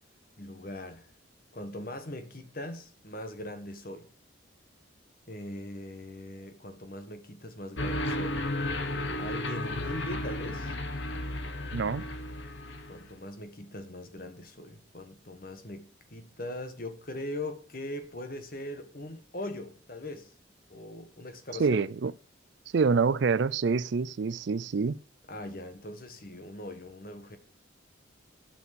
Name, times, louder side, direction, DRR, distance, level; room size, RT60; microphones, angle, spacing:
voice 1, 0.4-1.1 1.5-4.1 5.3-8.4 9.2-10.7 12.9-20.3 20.7-21.8 25.3-27.4, left 1 dB, 45° left, 1.5 m, -40 dB
sound 1, 7.8-13.1, left 1 dB, 70° left, 1.2 m, -33 dB
voice 2, 11.7-12.1 21.6-22.1 22.7-25.0, right 5 dB, 65° right, 0.4 m, -26 dB
9.3 x 7.2 x 6.7 m
head